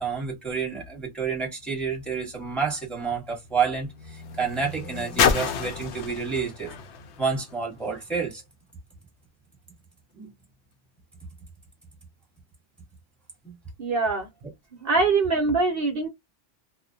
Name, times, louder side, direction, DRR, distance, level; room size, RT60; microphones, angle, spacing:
voice 1, 0.0-6.7 7.2-8.4 10.1-10.3 13.4-13.5, right 5 dB, ahead, 0.9 m, -29 dB
sound 1, 1.7-8.2 9.0-9.1, left 7 dB, 70° left, 0.8 m, -30 dB
voice 2, 13.8-14.3 14.8-16.1, right 3 dB, 60° right, 0.8 m, -23 dB
2.4 x 2.1 x 2.7 m
omnidirectional pair, 1.2 m